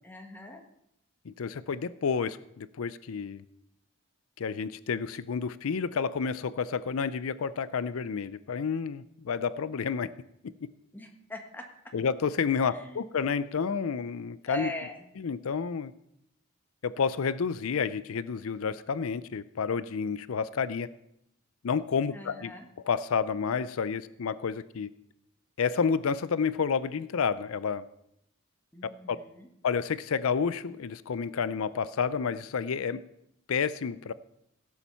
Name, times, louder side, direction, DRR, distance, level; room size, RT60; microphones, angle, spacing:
voice 1, 0.0-0.6 10.9-11.7 12.6-13.1 14.5-15.1 22.1-22.7 28.7-29.5, equal, 10° left, 2 dB, 1.4 m, -41 dB
voice 2, 1.3-3.4 4.4-10.1 11.9-14.7 15.2-15.9 16.8-20.9 21.6-22.5 22.9-24.9 25.6-27.8 29.1-29.2 29.6-33.0 33.5-34.1, left 6 dB, 85° left, 16 dB, 0.5 m, -30 dB
17.0 x 7.2 x 5.6 m, 0.78 s
head